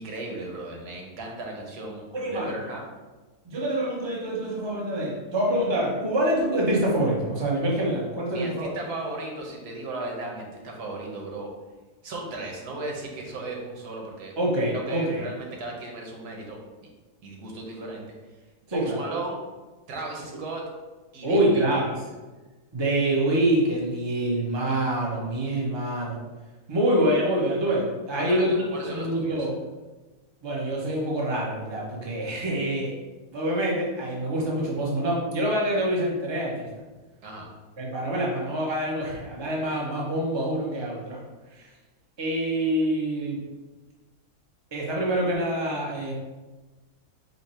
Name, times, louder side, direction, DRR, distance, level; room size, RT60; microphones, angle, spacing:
voice 1, 0.0-2.8 8.3-11.5 12.0-14.3 14.7-16.6 17.2-18.1 18.7-19.4 19.9-20.6 21.1-21.6 28.1-29.5 37.2-37.5, right 2 dB, 90° right, 0 dB, 1.4 m, -35 dB
voice 2, 2.1-2.5 3.4-8.7 14.4-15.3 18.7-19.0 21.2-21.9 22.7-26.2 26.7-28.6 28.8-29.6 30.4-33.0 33.3-36.7 37.8-41.2 41.6-41.7 42.2-43.4 44.7-46.1, right 1 dB, 25° right, -3 dB, 0.7 m, -26 dB
5.6 x 2.2 x 4.3 m, 1.2 s
omnidirectional pair, 1.7 m